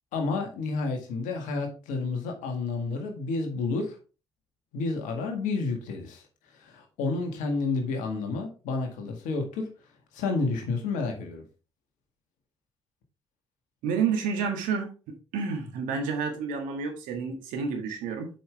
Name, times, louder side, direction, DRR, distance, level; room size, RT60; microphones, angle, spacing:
voice 1, 0.1-4.0 4.7-6.2 6.5-9.7 10.1-11.4, left 3 dB, 70° left, 4 dB, 1.8 m, -30 dB
voice 2, 13.8-14.9 15.3-18.3, right 5 dB, 70° right, 3 dB, 1.7 m, -29 dB
7.6 x 5.5 x 3.4 m, 0.34 s
figure-of-eight pair, 45°, 14 cm